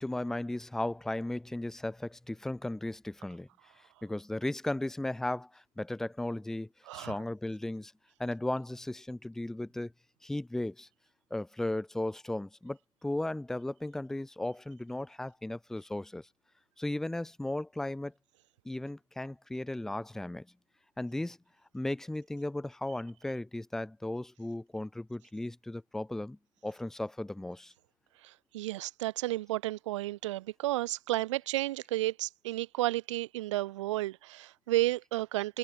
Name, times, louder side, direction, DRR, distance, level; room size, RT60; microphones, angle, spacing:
voice 1, 0.0-3.5 4.0-7.9 8.2-9.9 10.2-10.9 11.3-16.3 16.8-18.1 18.6-20.5 21.0-21.4 21.7-27.7, left 1 dB, ahead, 1.1 m, -36 dB
voice 2, 6.9-7.2 28.2-35.6, right 16 dB, 55° right, 0.8 m, -32 dB
hypercardioid pair, 145°, 19 cm